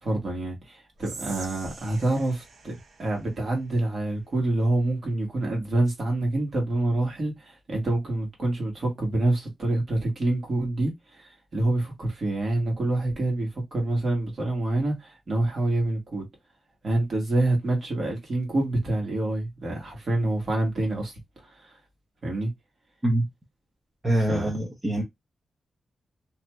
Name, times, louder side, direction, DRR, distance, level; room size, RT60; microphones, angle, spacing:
voice 1, 0.0-2.7 3.0-16.3 16.8-21.1 21.4-21.7 22.2-22.5 24.3-24.5, right 2 dB, 45° right, 1.4 m, -27 dB
Whispering, 1.0-4.2, right 3 dB, 75° right, 0.8 m, -44 dB
voice 2, 24.0-25.0, right 1 dB, 20° right, 0.8 m, -24 dB
3.0 x 2.8 x 2.3 m
wide cardioid pair, 160°, 0 cm